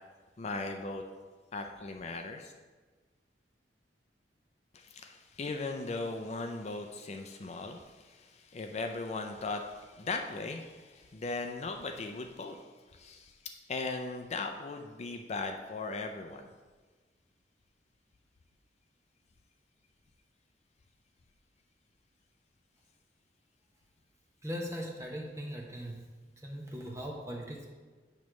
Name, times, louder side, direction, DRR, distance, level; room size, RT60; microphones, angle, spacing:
voice 1, 0.4-1.0 1.5-2.5 4.7-12.6 12.9-16.5, left 3 dB, 40° left, 4 dB, 0.4 m, -38 dB
voice 2, 24.4-26.0 26.4-27.7, equal, 15° right, 0 dB, 1.0 m, -39 dB
8.7 x 3.1 x 6.1 m, 1.4 s
head